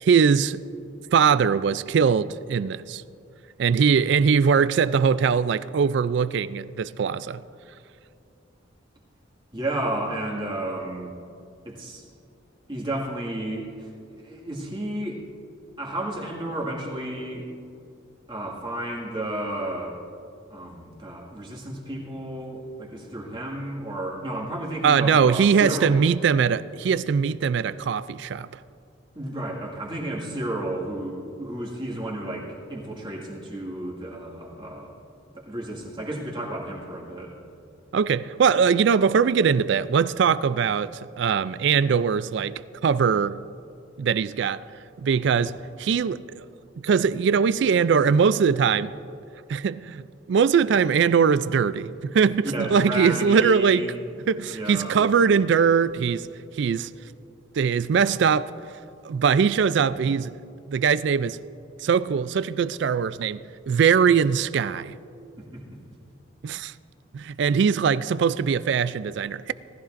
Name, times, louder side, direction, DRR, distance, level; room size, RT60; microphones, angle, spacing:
voice 1, 0.0-0.6 1.1-3.0 3.6-7.4 24.8-28.5 37.9-43.4 44.0-44.6 45.0-46.4 46.8-48.9 49.5-50.0 50.3-53.9 54.3-56.3 56.6-56.9 57.5-58.5 59.0-60.3 60.7-61.4 61.8-63.4 63.7-64.9 66.4-66.7 67.1-69.5, right 6 dB, 60° right, 0.3 m, -21 dB
voice 2, 9.5-11.1 11.6-12.0 12.7-15.2 15.8-17.5 18.3-20.0 20.5-26.0 29.2-34.9 35.3-37.4 52.4-53.9 54.5-55.1 65.4-65.8, right 1 dB, 25° right, 1.9 m, -32 dB
19.0 x 14.0 x 2.6 m
head